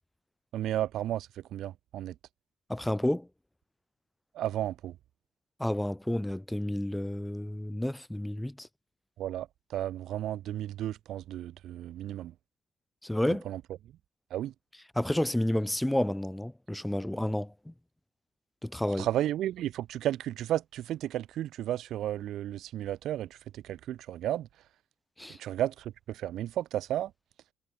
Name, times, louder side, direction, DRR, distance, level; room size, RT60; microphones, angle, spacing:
voice 1, 0.5-2.1 4.3-4.9 9.2-12.3 13.3-13.6 14.3-14.5 19.0-23.3 23.5-24.5 25.4-27.1, right 12 dB, 80° right, 3.2 m, -33 dB
voice 2, 2.7-3.3 5.6-8.7 13.0-13.4 15.0-17.7 18.6-19.1 25.2-25.4, left 1 dB, 5° left, 2.5 m, -30 dB
cardioid pair, 90°, 0 cm